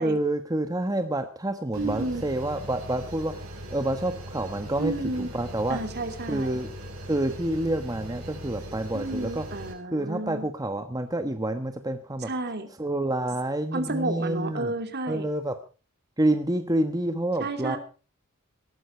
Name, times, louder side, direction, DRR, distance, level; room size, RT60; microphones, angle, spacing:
voice 1, 0.0-3.3 3.7-4.9 5.2-5.8 6.3-6.7 7.0-9.4 9.9-12.3 12.8-14.7 15.1-15.5 16.2-17.8, right 1 dB, 20° right, 8 dB, 1.1 m, -28 dB
sound 1, 1.7-9.7, equal, 85° right, 5.6 m, -40 dB
voice 2, 1.8-2.2 4.8-5.3 5.7-6.6 8.9-10.5 12.2-12.7 13.7-15.3 17.4-17.8, right 2 dB, 50° right, 8 dB, 2.7 m, -31 dB
18.5 x 13.5 x 4.4 m, 0.35 s
head